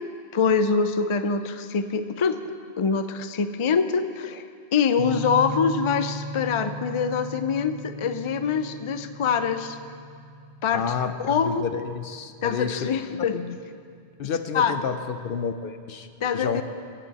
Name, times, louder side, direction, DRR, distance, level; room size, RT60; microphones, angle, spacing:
voice 1, 0.3-2.4 2.8-4.4 4.7-9.8 10.6-10.9 11.2-11.6 12.4-13.4 14.5-14.8 16.2-16.6, left 6 dB, 45° left, 10 dB, 0.4 m, -24 dB
sound 1, 4.9-13.7, equal, 85° right, 1.4 m, -38 dB
voice 2, 10.7-13.6 14.2-16.1 16.3-16.6, left 6 dB, 60° left, 9 dB, 0.8 m, -30 dB
23.0 x 8.4 x 4.1 m, 2.3 s
omnidirectional pair, 1.1 m